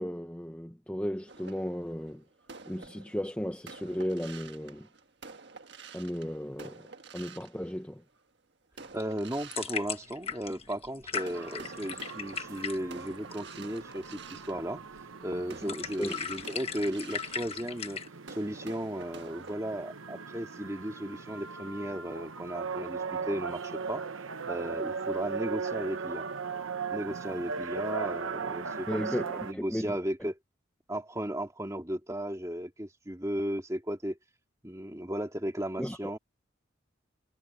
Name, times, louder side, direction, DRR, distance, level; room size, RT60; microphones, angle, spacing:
voice 1, 0.0-2.2 2.7-4.9 5.9-6.9 7.1-8.0 16.0-16.1 28.9-30.0 35.8-36.1, equal, 5° left, 0.8 m, -35 dB
sound 1, 1.3-8.2 8.7-10.7 11.1-19.6, right 4 dB, 55° right, 1.6 m, -49 dB
sound 2, 8.8-18.1, left 6 dB, 30° left, 1.3 m, -39 dB
voice 2, 8.9-14.8 15.2-18.0 18.3-24.0 24.5-26.3 26.9-29.0 29.4-30.4 30.9-34.2 34.6-36.2, equal, 15° right, 2.5 m, -35 dB
sound 3, 11.3-29.5, right 5 dB, 75° right, 1.1 m, -38 dB
head